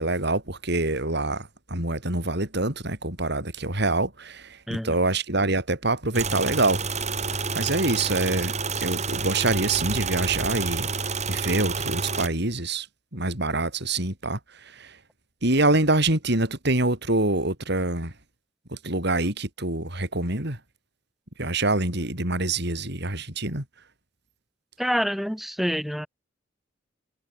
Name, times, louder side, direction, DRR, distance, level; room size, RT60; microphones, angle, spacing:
voice 1, 0.0-6.8 7.5-8.5 8.8-10.9 11.3-12.9 13.1-15.0 15.4-18.1 18.7-20.6 21.4-23.6, right 2 dB, 60° right, 6.9 m, -25 dB
sound 1, 6.1-12.3, right 4 dB, 35° right, 7.5 m, -29 dB
voice 2, 24.8-26.1, equal, ahead, 4.4 m, -27 dB
head